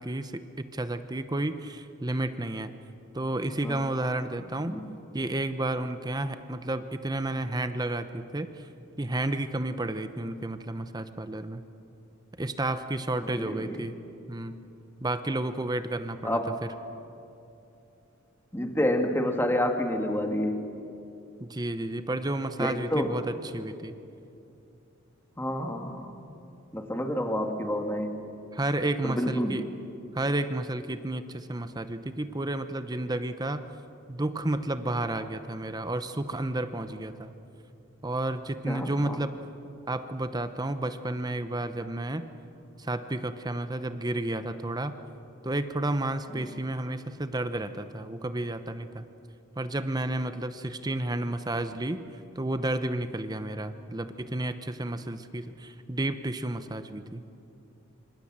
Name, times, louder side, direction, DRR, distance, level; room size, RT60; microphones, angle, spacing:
voice 1, 0.0-2.7 3.1-4.8 5.1-8.7 9.0-11.6 12.4-14.0 14.3-14.5 15.0-16.7 21.4-24.0 28.5-29.7 30.1-33.6 34.1-37.3 38.0-39.4 39.9-42.2 42.8-44.9 45.4-49.0 49.6-52.0 52.3-57.2, right 1 dB, 20° right, 10 dB, 0.8 m, -31 dB
voice 2, 13.2-13.8 16.2-16.6 18.5-20.7 22.6-23.1 25.4-26.2 26.7-28.2 29.0-29.6 38.7-39.2 46.4-46.5, left 1 dB, 10° left, 4 dB, 1.9 m, -29 dB
26.5 x 26.0 x 7.4 m, 2.7 s
head